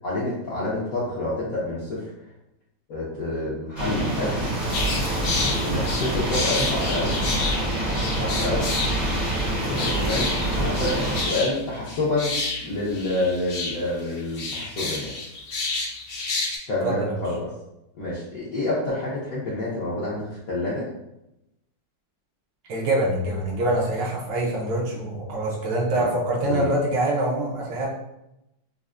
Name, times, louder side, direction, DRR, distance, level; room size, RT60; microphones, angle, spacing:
voice 1, 0.0-2.1 2.9-4.5 5.6-7.2 8.1-8.7 9.7-10.3 10.6-12.3 12.6-15.1 16.7-17.5 18.0-20.9 26.4-26.7, left 2 dB, 65° left, -7 dB, 0.9 m, -28 dB
sound 1, 3.8-11.2, right 1 dB, 35° right, 0.6 m, -26 dB
sound 2, 4.7-16.6, left 3 dB, 80° left, 0.5 m, -30 dB
voice 2, 16.8-17.2 22.7-27.9, right 1 dB, 70° right, -2 dB, 1.3 m, -25 dB
5.3 x 2.1 x 2.4 m, 0.88 s
omnidirectional pair, 2.3 m